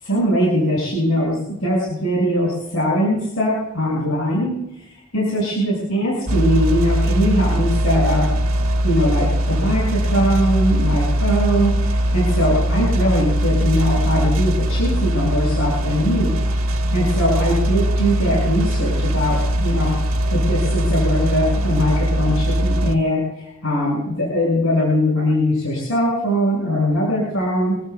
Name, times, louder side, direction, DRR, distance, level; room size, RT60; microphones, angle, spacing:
voice 1, 0.0-4.5 5.1-8.3 8.8-16.3 16.9-19.9 20.3-27.8, equal, 75° left, -5 dB, 7.3 m, -21 dB
sound 1, 6.3-22.9, equal, 80° right, 1.6 m, -20 dB
27.0 x 15.5 x 2.5 m, 0.82 s
head